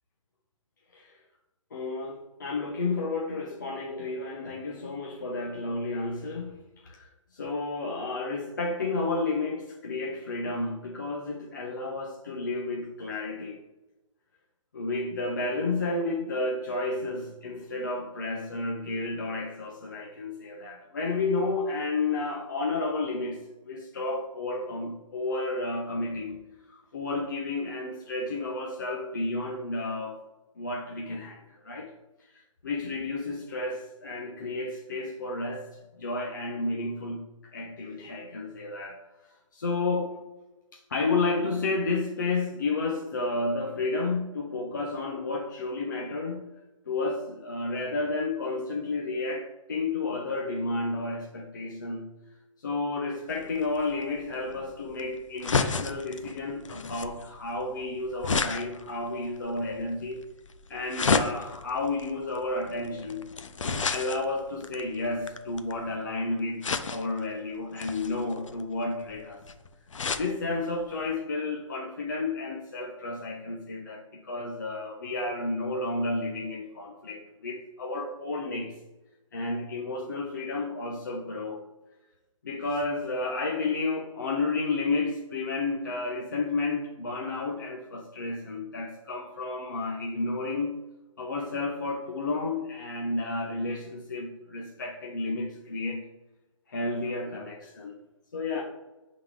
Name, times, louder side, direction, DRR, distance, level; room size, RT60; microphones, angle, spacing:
voice 1, 1.7-13.6 14.7-26.4 26.7-30.2 30.6-31.9 32.2-35.7 36.0-39.0 39.2-40.2 40.7-46.5 46.9-52.1 52.6-60.3 60.7-63.3 63.6-69.4 70.1-78.8 79.3-81.6 82.4-90.8 91.2-96.1 96.7-98.0 98.3-98.6, left 3 dB, 35° left, 0 dB, 0.7 m, -31 dB
sound 1, 53.3-65.9 66.6-67.2 67.8-70.3 70.8-70.9 71.1-71.2, left 5 dB, 70° left, 0.7 m, -32 dB
10.5 x 3.9 x 3.7 m, 1.1 s
hypercardioid pair, 180°, 17 cm